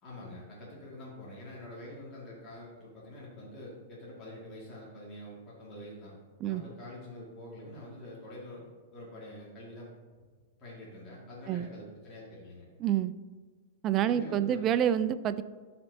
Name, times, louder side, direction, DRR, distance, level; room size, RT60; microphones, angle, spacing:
voice 1, 0.0-6.2 6.4-10.3 10.6-12.7 14.0-14.6, left 1 dB, 35° left, -6 dB, 2.3 m, -46 dB
voice 2, 12.8-13.1 13.8-15.4, right 10 dB, 35° right, 14 dB, 0.4 m, -27 dB
12.5 x 4.3 x 2.8 m, 1.5 s
hypercardioid pair, 100°, 0 cm